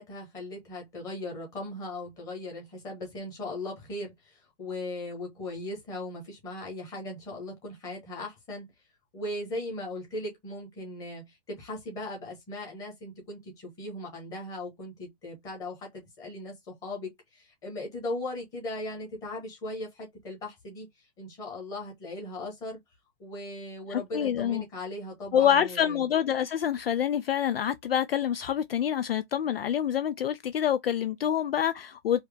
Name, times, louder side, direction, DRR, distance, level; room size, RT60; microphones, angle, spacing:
voice 1, 0.0-8.7 9.1-22.8 23.2-26.1, left 1 dB, 10° left, 1.3 m, -38 dB
voice 2, 23.9-24.6 25.3-32.2, left 9 dB, 55° left, 0.4 m, -26 dB
4.7 x 2.9 x 3.4 m
hypercardioid pair, 180°, 35 cm